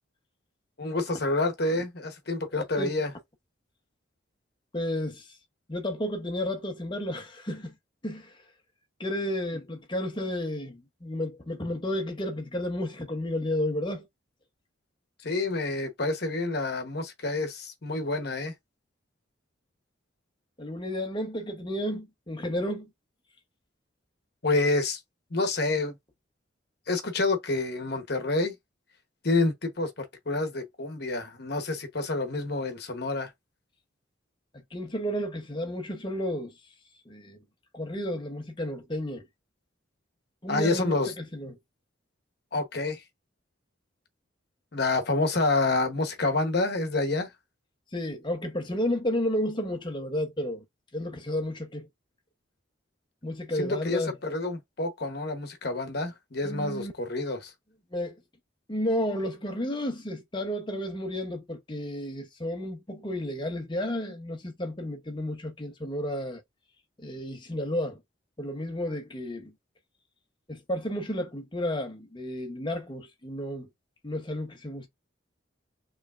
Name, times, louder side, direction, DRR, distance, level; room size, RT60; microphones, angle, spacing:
voice 1, 0.8-3.1 9.5-9.6 15.2-18.5 24.4-25.0 25.3-26.0 26.9-28.5 29.2-33.3 40.5-41.1 42.5-43.0 44.7-47.3 53.5-57.5, left 2 dB, 55° left, 1.0 m, -28 dB
voice 2, 4.7-5.3 5.7-7.7 8.0-8.4 9.0-14.1 20.6-22.9 34.7-36.5 37.1-37.4 37.7-39.2 40.4-41.6 47.9-50.6 50.9-51.9 53.2-54.1 56.4-56.9 57.9-58.2 58.7-66.4 67.0-68.0 68.4-69.5 70.5-73.7 74.0-74.9, left 1 dB, 25° left, 0.9 m, -32 dB
4.7 x 3.2 x 2.4 m
head